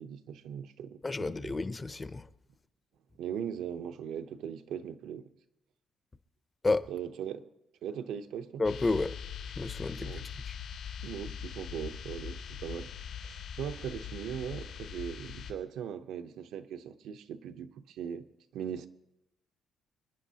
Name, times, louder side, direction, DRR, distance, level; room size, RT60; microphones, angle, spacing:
voice 1, 0.0-1.5 3.2-5.3 6.9-7.5 7.8-8.6 10.0-10.2 11.0-12.9 13.2-18.3 18.5-18.9, right 8 dB, 85° right, 0.7 m, -39 dB
voice 2, 1.0-2.3 6.6-6.9 8.6-9.1 9.6-10.1 10.5-10.6, left 3 dB, 15° left, 0.5 m, -30 dB
sound 1, 8.6-15.5, left 8 dB, 75° left, 2.3 m, -42 dB
28.0 x 10.0 x 2.8 m
cardioid pair, 170°, 0 cm